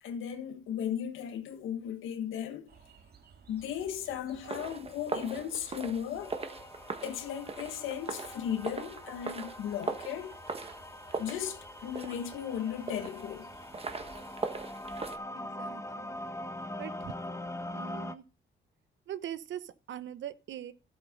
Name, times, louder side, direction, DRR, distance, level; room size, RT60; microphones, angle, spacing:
voice 1, 0.0-2.7 3.5-6.4 7.0-10.4 11.2-13.5, left 9 dB, 85° left, 1.6 m, -36 dB
sound 1, 2.7-14.4, right 6 dB, 50° right, 2.1 m, -58 dB
sound 2, 4.4-15.2, right 4 dB, 30° right, 1.4 m, -40 dB
sound 3, 6.2-18.2, left 1 dB, 15° left, 1.2 m, -43 dB
voice 2, 15.4-16.2 16.8-17.2 17.7-18.2 19.1-20.7, right 10 dB, 70° right, 1.0 m, -42 dB
12.5 x 8.1 x 3.8 m
cardioid pair, 90°, 20 cm